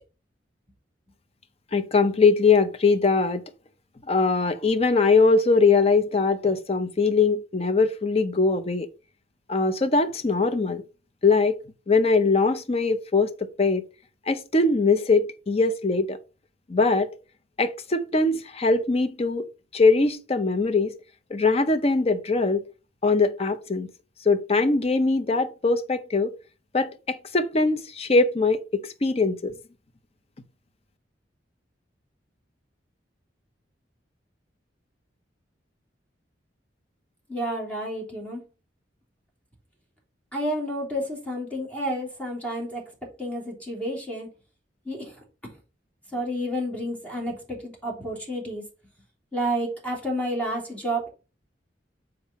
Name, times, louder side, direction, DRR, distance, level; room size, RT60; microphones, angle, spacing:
voice 1, 1.7-3.4 4.1-8.9 9.5-10.8 11.2-11.6 11.9-13.3 13.6-13.8 14.3-16.2 16.7-17.1 17.6-19.5 19.7-20.9 21.3-22.6 23.0-23.9 24.3-26.3 26.7-29.5, left 3 dB, 35° left, 0.6 m, -21 dB
voice 2, 37.3-38.4 40.3-42.8 43.2-44.3 44.8-45.2 46.1-48.6 49.3-51.1, equal, 10° left, 3.1 m, -30 dB
7.4 x 4.9 x 4.2 m
head